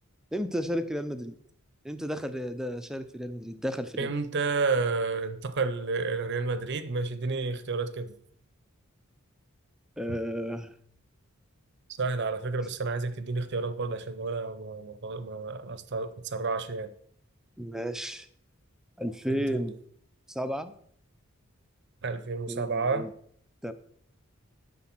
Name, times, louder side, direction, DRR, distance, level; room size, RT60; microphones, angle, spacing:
voice 1, 0.3-1.4 1.8-4.1 10.0-10.7 17.6-18.3 19.0-19.8 20.3-20.7 22.5-23.1 23.6-23.7, equal, ahead, 0.5 m, -33 dB
voice 2, 4.0-8.1 10.1-10.2 12.0-16.9 19.3-19.8 22.0-23.1, right 4 dB, 50° right, 0.6 m, -31 dB
11.5 x 3.8 x 6.0 m
head